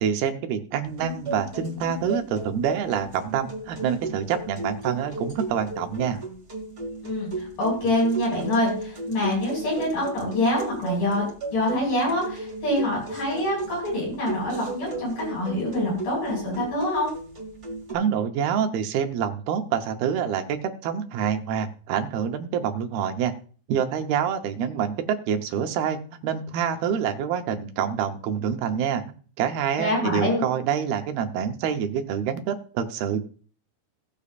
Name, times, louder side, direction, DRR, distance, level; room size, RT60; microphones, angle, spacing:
voice 1, 0.0-6.2 17.9-23.3 23.7-29.0 29.4-33.2, right 8 dB, 80° right, 5 dB, 2.9 m, -26 dB
sound 1, 0.8-17.9, right 2 dB, 25° right, 1.6 m, -35 dB
voice 2, 7.0-11.3 11.5-17.1 29.8-30.4, left 1 dB, 60° left, -4 dB, 7.7 m, -25 dB
18.0 x 6.9 x 2.5 m, 0.41 s
omnidirectional pair, 4.4 m